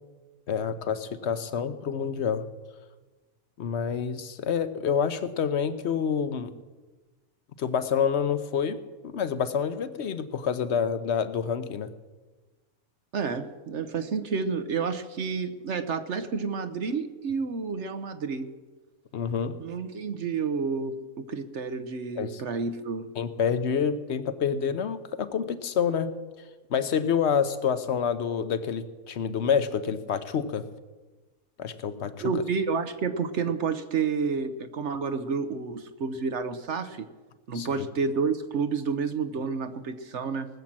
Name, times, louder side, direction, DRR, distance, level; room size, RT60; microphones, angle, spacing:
voice 1, 0.5-2.4 3.6-6.5 7.6-11.9 19.1-19.5 22.2-22.4 23.2-26.1 26.7-30.7 31.6-32.4 37.5-37.9, left 7 dB, 55° left, 11 dB, 1.0 m, -28 dB
voice 2, 13.1-18.5 19.6-23.1 32.2-37.1 37.5-40.5, right 5 dB, 55° right, 10 dB, 1.0 m, -30 dB
19.0 x 7.5 x 7.4 m, 1.3 s
omnidirectional pair, 1.6 m